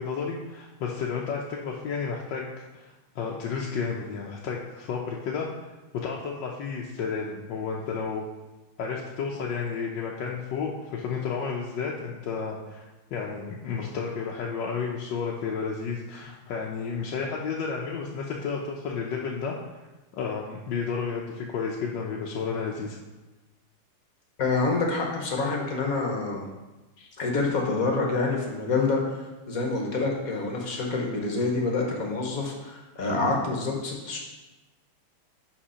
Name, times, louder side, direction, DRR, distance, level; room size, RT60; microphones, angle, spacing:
voice 1, 0.0-2.5 2.7-5.5 5.9-8.2 8.8-19.8 20.1-23.0 27.0-27.1, left 5 dB, 70° left, -2 dB, 1.2 m, -32 dB
voice 2, 24.4-26.5 27.2-34.2, left 3 dB, 50° left, 0 dB, 1.3 m, -27 dB
5.8 x 4.9 x 5.6 m, 1.1 s
omnidirectional pair, 2.3 m